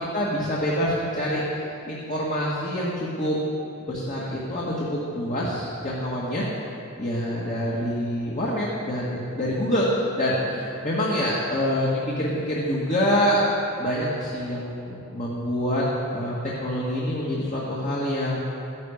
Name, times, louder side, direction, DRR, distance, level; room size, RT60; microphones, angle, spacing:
voice 1, 0.0-3.4 3.9-11.9 12.2-13.4 13.8-15.8 16.1-18.4, equal, 35° left, -5 dB, 1.9 m, -26 dB
15.0 x 11.0 x 6.6 m, 2.6 s
head